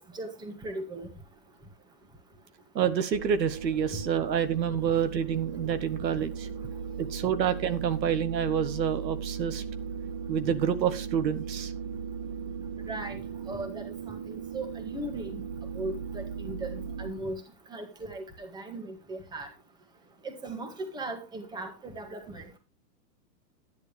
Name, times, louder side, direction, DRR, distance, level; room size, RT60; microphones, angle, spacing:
voice 1, 0.1-1.1 3.9-4.0 12.9-13.2 13.5-15.4 15.7-17.4 17.7-19.5 20.2-22.5, right 2 dB, 10° right, 5 dB, 1.8 m, -38 dB
voice 2, 2.7-6.5 7.0-9.6 10.3-11.7, right 8 dB, 85° right, 10 dB, 1.7 m, -28 dB
sound 1, 3.1-17.1, right 6 dB, 25° right, 0.7 m, -37 dB
11.0 x 10.5 x 3.5 m, 0.27 s
hypercardioid pair, 150°, 50 cm